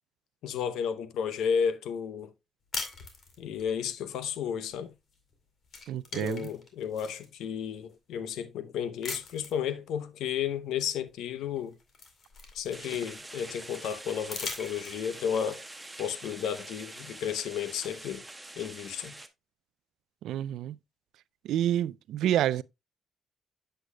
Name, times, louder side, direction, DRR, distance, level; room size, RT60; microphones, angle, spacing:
voice 1, 0.4-2.3 3.4-4.9 6.1-11.7 12.5-15.6 16.0-18.2 18.6-19.2, left 8 dB, 85° left, 0.7 m, -33 dB
sound 1, 2.7-3.7 5.1-5.3 5.6-7.3 7.9-8.0 9.0-9.6 11.1-11.2 11.6-13.1 14.2-15.3, left 4 dB, 50° left, 2.3 m, -40 dB
voice 2, 5.9-6.5 20.2-20.8 21.4-22.6, right 11 dB, 80° right, 0.3 m, -28 dB
sound 2, 12.7-19.3, right 2 dB, 10° right, 1.0 m, -45 dB
8.1 x 7.7 x 2.2 m
cardioid pair, 90°, 0 cm